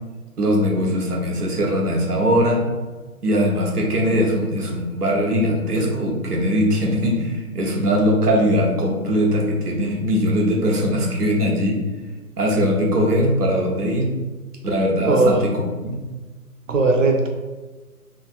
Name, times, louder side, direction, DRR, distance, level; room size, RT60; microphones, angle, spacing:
voice 1, 0.4-2.7 3.2-11.8 12.4-14.1 14.6-15.5 15.8-16.0, equal, 85° right, -1 dB, 1.0 m, -20 dB
voice 2, 15.1-15.4 16.7-17.3, right 3 dB, 55° right, 2 dB, 0.6 m, -18 dB
3.4 x 2.7 x 2.3 m, 1.3 s
figure-of-eight pair, 150°, 45 cm